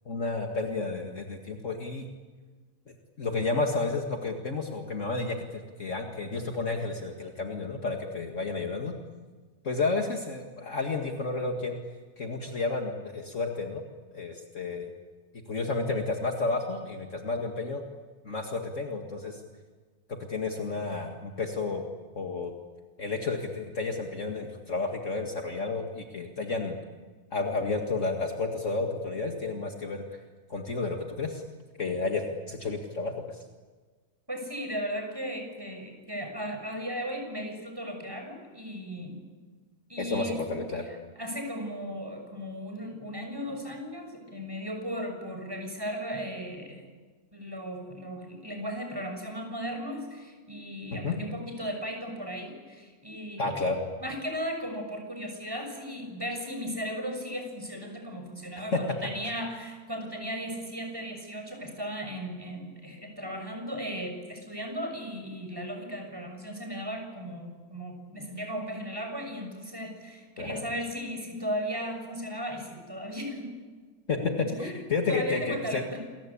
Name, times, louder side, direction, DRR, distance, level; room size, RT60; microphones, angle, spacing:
voice 1, 0.1-2.1 2.9-8.9 9.6-11.8 12.2-13.8 14.1-14.9 15.5-17.8 18.2-19.4 20.3-21.9 22.2-22.5 23.0-26.8 27.3-30.2 30.5-31.4 31.8-33.4 40.0-40.8 50.9-51.2 53.4-53.8 58.7-58.8 70.4-70.6 74.1-74.2 74.6-75.8, left 3 dB, 55° left, 2 dB, 2.3 m, -31 dB
voice 2, 34.3-39.2 39.9-40.5 40.8-40.9 41.2-46.8 47.3-53.6 54.0-73.5 74.1-74.7 75.1-76.0, equal, 15° right, 3 dB, 6.5 m, -36 dB
28.5 x 23.0 x 8.6 m, 1.4 s
omnidirectional pair, 1.6 m